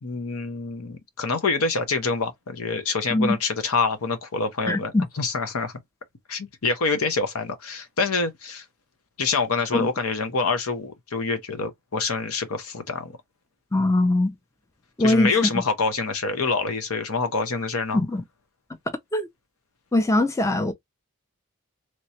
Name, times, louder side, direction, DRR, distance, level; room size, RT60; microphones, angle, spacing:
voice 1, 0.0-5.7 6.3-8.6 9.2-13.2 15.0-18.0, left 4 dB, 75° left, 0.8 m, -26 dB
voice 2, 4.7-5.0 9.7-9.9 13.7-14.4 15.0-15.3 17.9-18.2 19.1-19.3 19.9-20.7, left 2 dB, 15° left, 0.4 m, -21 dB
3.2 x 3.0 x 2.8 m
head